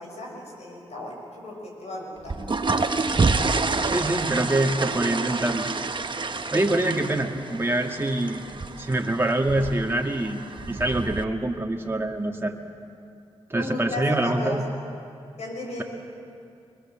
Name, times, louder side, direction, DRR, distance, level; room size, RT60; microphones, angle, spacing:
voice 1, 0.0-2.9 13.5-14.6 15.4-15.8, left 1 dB, 75° left, -1 dB, 6.7 m, -35 dB
sound 1, 2.2-11.2, right 3 dB, 45° right, 1.3 m, -28 dB
voice 2, 3.7-5.7 6.5-8.4 8.8-10.4 10.7-12.6 13.5-14.6, right 1 dB, 20° right, 1 dB, 2.2 m, -25 dB
23.5 x 22.0 x 7.5 m, 2.5 s
cardioid pair, 50°, 12 cm